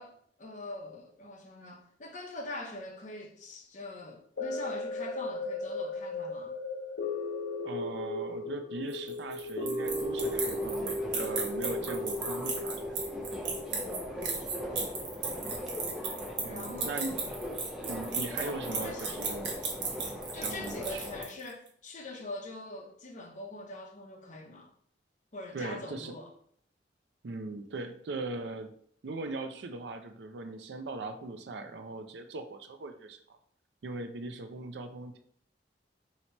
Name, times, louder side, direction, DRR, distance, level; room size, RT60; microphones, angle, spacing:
voice 1, 0.0-6.5 13.7-14.4 16.4-17.0 18.2-19.1 20.3-24.7 25.3-26.3, left 2 dB, 45° left, 0.7 m, -43 dB
sound 1, 4.4-14.7 15.2-15.3, left 2 dB, 85° left, 0.6 m, -36 dB
voice 2, 7.6-13.0 16.4-17.3 17.9-19.6 20.3-21.0 25.5-26.2 27.2-28.7 29.0-33.2 33.8-35.2, right 3 dB, 70° right, 0.4 m, -39 dB
sound 2, 8.9-21.5, right 5 dB, 85° right, 1.0 m, -35 dB
Subway metro underground, 9.9-21.2, left 1 dB, 5° right, 0.6 m, -40 dB
2.9 x 2.8 x 4.4 m
head